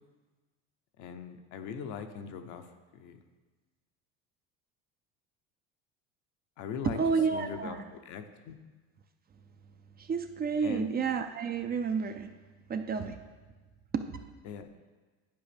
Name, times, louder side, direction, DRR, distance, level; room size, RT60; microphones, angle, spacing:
voice 1, 1.0-2.7 2.9-3.2 6.6-7.0 7.3-8.6 10.6-10.9 14.4-14.7, left 7 dB, 65° left, 7 dB, 0.8 m, -40 dB
voice 2, 6.8-7.8 10.0-12.3 12.7-13.2 13.9-14.2, right 5 dB, 30° right, 7 dB, 0.5 m, -30 dB
10.5 x 4.9 x 3.4 m, 1.3 s
supercardioid pair, 90°, 33 cm